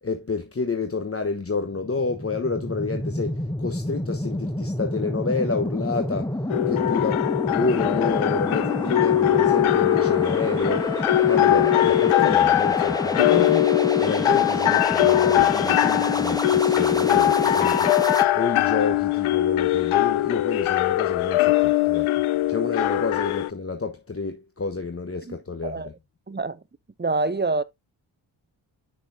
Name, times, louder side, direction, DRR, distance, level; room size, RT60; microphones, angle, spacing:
voice 1, 0.0-6.3 6.7-11.0 11.2-13.7 14.0-17.9 18.3-22.1 22.5-25.8, left 4 dB, 30° left, 1.1 m, -29 dB
sound 1, 1.8-18.2, left 1 dB, 10° left, 1.3 m, -28 dB
sound 2, 6.5-23.5, left 14 dB, 85° left, 0.6 m, -21 dB
voice 2, 26.3-26.6 27.0-27.6, right 3 dB, 20° right, 0.7 m, -26 dB
8.0 x 6.2 x 2.6 m
cardioid pair, 45°, 48 cm